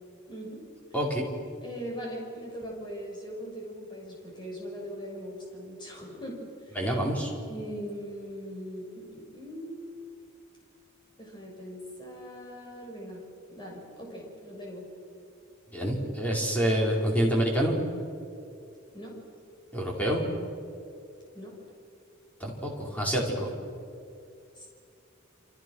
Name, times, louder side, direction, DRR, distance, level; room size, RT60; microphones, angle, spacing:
voice 1, 0.3-0.6 1.6-6.8 7.5-9.9 11.2-13.2 13.5-14.8 18.9-19.2 21.3-21.5 24.6-24.7, equal, 20° left, -2 dB, 7.0 m, -40 dB
voice 2, 0.9-1.3 6.7-7.3 15.7-17.7 19.7-20.2 22.4-23.5, equal, 5° left, -2 dB, 4.8 m, -27 dB
28.5 x 28.0 x 6.4 m, 2.5 s
head